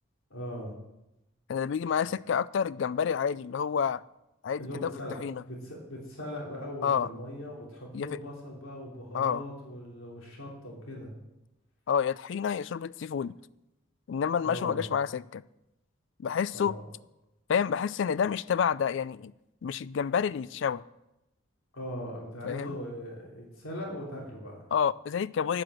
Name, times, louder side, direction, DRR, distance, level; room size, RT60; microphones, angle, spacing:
voice 1, 0.3-0.7 2.0-2.1 4.6-5.2 5.4-11.1 14.4-14.9 16.5-16.8 21.7-24.6, equal, 85° left, -2 dB, 3.1 m, -40 dB
voice 2, 1.5-4.0 4.4-4.9 5.2-5.4 6.8-7.1 7.9-8.1 9.1-9.4 11.9-13.3 14.1-15.4 16.2-16.8 17.5-19.3 19.6-20.8 22.4-22.8 24.7-25.6, left 7 dB, 60° left, 19 dB, 0.3 m, -29 dB
9.8 x 7.7 x 7.5 m, 0.92 s
head